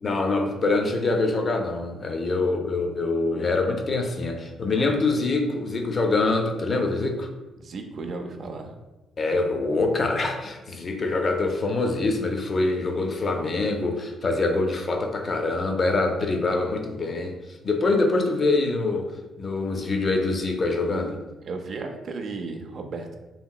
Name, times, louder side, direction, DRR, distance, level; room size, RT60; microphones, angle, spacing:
voice 1, 0.0-7.3 9.2-17.4 17.6-19.1 19.4-21.2, left 3 dB, 40° left, 4 dB, 0.4 m, -24 dB
voice 2, 7.6-8.7 21.4-23.2, right 3 dB, 55° right, 4 dB, 0.4 m, -35 dB
2.8 x 2.8 x 2.2 m, 1.1 s
cardioid pair, 90°, 0 cm